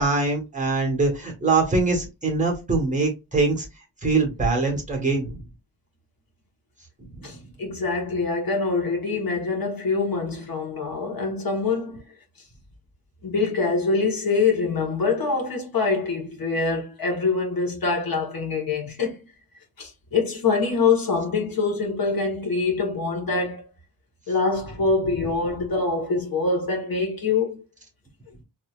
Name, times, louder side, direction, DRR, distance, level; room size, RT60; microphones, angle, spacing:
voice 1, 0.0-3.6 4.0-5.4 7.1-7.4, right 3 dB, 15° right, 1.3 m, -23 dB
voice 2, 7.2-12.0 13.2-19.2 19.8-23.6 24.3-27.6, left 4 dB, 50° left, 1.3 m, -24 dB
4.1 x 2.9 x 2.4 m
wide cardioid pair, 165°, 45 cm